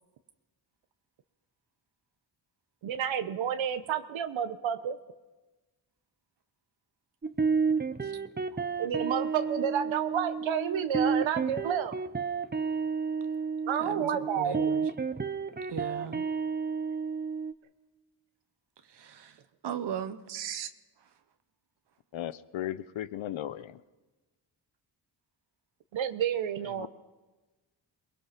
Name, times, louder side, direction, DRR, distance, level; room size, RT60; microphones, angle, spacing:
voice 1, 2.8-5.0 8.8-12.0 13.7-14.7 20.3-20.7 25.9-26.9, right 8 dB, 80° right, 9 dB, 1.2 m, -30 dB
sound 1, 7.2-17.5, right 5 dB, 20° right, 0.9 m, -31 dB
voice 2, 13.8-14.9 15.7-16.2 19.0-19.3 19.6-20.2, right 8 dB, 60° right, 9 dB, 1.2 m, -37 dB
voice 3, 22.1-23.8 26.6-26.9, left 12 dB, 85° left, 15 dB, 0.9 m, -36 dB
23.0 x 19.5 x 5.9 m, 1.2 s
cardioid pair, 80°, 46 cm